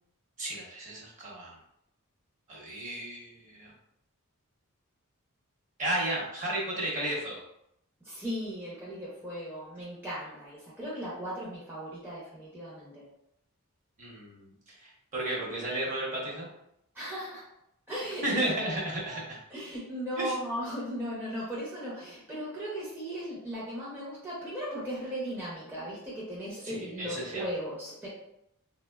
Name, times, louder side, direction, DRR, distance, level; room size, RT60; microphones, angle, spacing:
voice 1, 0.4-1.6 2.5-3.7 5.8-7.4 14.0-16.5 18.2-19.4 20.2-20.4 26.6-27.4, right 1 dB, 35° right, -5 dB, 0.8 m, -33 dB
voice 2, 8.0-13.1 16.9-17.5 17.9-18.5 19.5-28.1, equal, 10° right, -8 dB, 0.6 m, -37 dB
3.1 x 2.1 x 2.2 m, 0.78 s
head